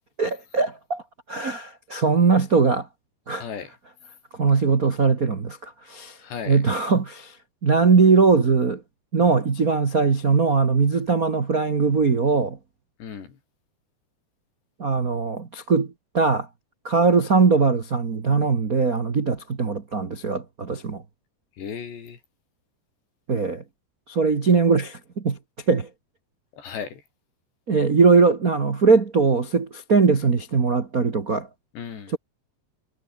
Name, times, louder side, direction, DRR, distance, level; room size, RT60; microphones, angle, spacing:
voice 1, 0.2-1.0 1.3-2.9 3.3-3.4 4.3-6.2 6.5-7.4 7.6-8.8 9.1-12.6 14.8-16.5 16.8-21.0 23.3-23.6 24.1-25.4 25.7-25.9 27.7-31.5, right 4 dB, 80° right, 0.7 m, -20 dB
voice 2, 3.4-3.7 6.2-6.6 13.0-13.4 21.6-22.2 26.6-27.0 31.7-32.1, left 7 dB, 90° left, 6.5 m, -35 dB
omnidirectional pair, 4.8 m